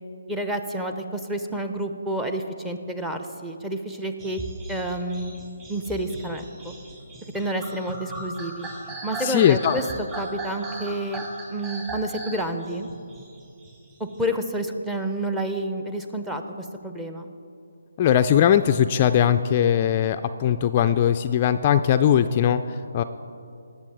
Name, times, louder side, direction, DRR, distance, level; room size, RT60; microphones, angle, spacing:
voice 1, 0.3-4.4 4.7-5.3 5.7-6.8 7.3-8.7 9.0-11.2 11.5-12.9 14.0-17.3, right 1 dB, 5° right, 6 dB, 0.7 m, -29 dB
sound 1, 4.2-14.2, right 2 dB, 25° right, 2.3 m, -38 dB
voice 2, 9.2-9.8 18.0-23.0, left 9 dB, 30° left, 8 dB, 0.3 m, -20 dB
18.0 x 7.1 x 4.7 m, 2.6 s
figure-of-eight pair, 145°, 0 cm